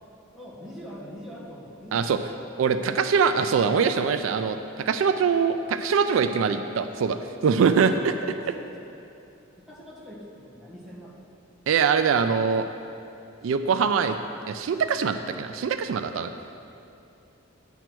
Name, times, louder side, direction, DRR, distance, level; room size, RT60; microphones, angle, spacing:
voice 1, 0.3-2.3 8.4-8.9 9.6-11.2, equal, 5° right, -8 dB, 1.6 m, -43 dB
voice 2, 2.6-7.2 7.4-8.1 11.7-12.7 13.4-14.2 14.5-16.3, right 6 dB, 80° right, 9 dB, 0.3 m, -23 dB
9.2 x 4.6 x 6.0 m, 2.6 s
head